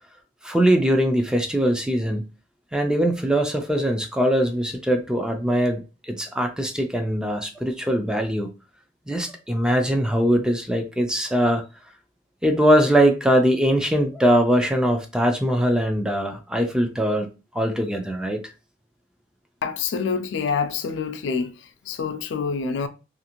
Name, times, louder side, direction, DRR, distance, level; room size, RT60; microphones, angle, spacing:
voice 1, 0.4-2.3 2.7-8.5 9.1-11.6 12.4-18.4, equal, 5° right, 0.3 m, -21 dB
voice 2, 19.6-21.5 21.9-22.9, left 5 dB, 90° left, 0.4 m, -26 dB
2.5 x 2.4 x 2.9 m
head